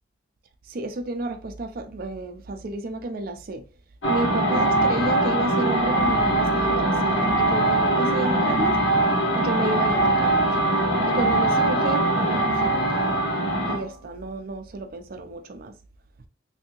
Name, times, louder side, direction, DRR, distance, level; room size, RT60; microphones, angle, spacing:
voice 1, 0.7-3.6 4.1-8.8 9.3-10.5 11.0-13.2 13.7-15.8, right 2 dB, 50° right, 0.4 m, -31 dB
sound 1, 4.0-13.8, right 1 dB, 85° left, 1.1 m, -22 dB
3.4 x 2.7 x 2.9 m
head